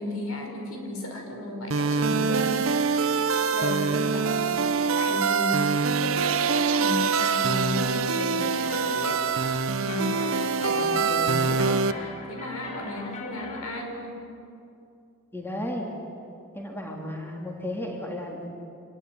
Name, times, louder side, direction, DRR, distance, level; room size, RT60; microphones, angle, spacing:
voice 1, 0.0-3.1 3.3-14.2, left 1 dB, 90° left, 2 dB, 5.6 m, -34 dB
sound 1, 1.7-11.9, right 5 dB, 70° right, 0.9 m, -24 dB
sound 2, 8.4-13.9, left 3 dB, 35° left, 2.3 m, -43 dB
voice 2, 11.1-11.4 15.3-15.9 16.5-18.5, left 1 dB, 10° left, 0 dB, 3.4 m, -34 dB
26.5 x 21.0 x 9.7 m, 2.6 s
head